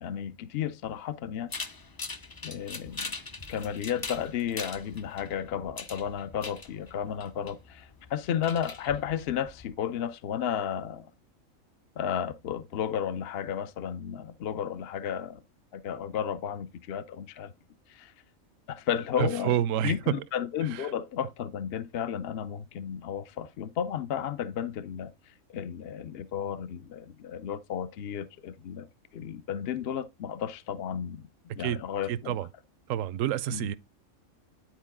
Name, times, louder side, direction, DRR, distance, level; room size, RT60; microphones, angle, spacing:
voice 1, 0.0-1.5 2.4-3.1 3.5-11.1 12.0-15.4 15.7-17.5 17.9-18.1 18.7-19.6 19.8-28.9 29.1-31.3 31.6-32.4 33.5-33.7, left 8 dB, 60° left, 0.7 m, -33 dB
sound 1, 1.5-9.7, left 3 dB, 35° left, 0.3 m, -42 dB
voice 2, 19.2-20.2 20.7-20.9 31.6-31.8 32.1-32.5 32.9-33.7, right 11 dB, 75° right, 1.0 m, -28 dB
10.5 x 4.6 x 3.5 m
omnidirectional pair, 1.4 m